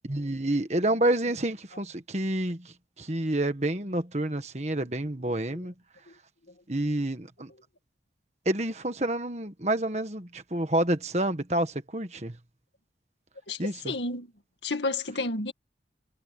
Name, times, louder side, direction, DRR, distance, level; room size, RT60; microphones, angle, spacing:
voice 1, 0.1-5.7 6.7-7.5 8.5-12.4 13.6-13.9, right 1 dB, 40° right, 1.6 m, -28 dB
voice 2, 13.5-14.3 14.6-15.5, left 2 dB, 85° left, 2.1 m, -31 dB
head